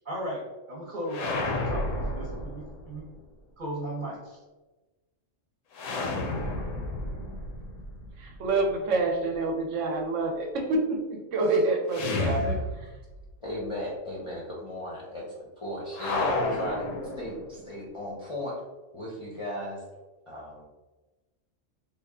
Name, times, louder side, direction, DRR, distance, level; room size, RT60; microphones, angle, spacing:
voice 1, 0.0-0.4 0.7-3.0 3.6-4.4, equal, 45° right, -4 dB, 0.9 m, -36 dB
sound 1, 1.1-3.1 5.7-8.7 11.9-13.3 13.6-13.7 15.9-17.7, left 2 dB, 80° left, 1.0 m, -32 dB
voice 2, 8.2-12.9, right 2 dB, 80° right, 3 dB, 0.9 m, -27 dB
voice 3, 13.4-16.8 17.2-18.6 18.9-19.8 20.3-20.6, left 1 dB, 35° left, -4 dB, 0.6 m, -36 dB
3.4 x 2.3 x 3.5 m, 1.2 s
omnidirectional pair, 1.3 m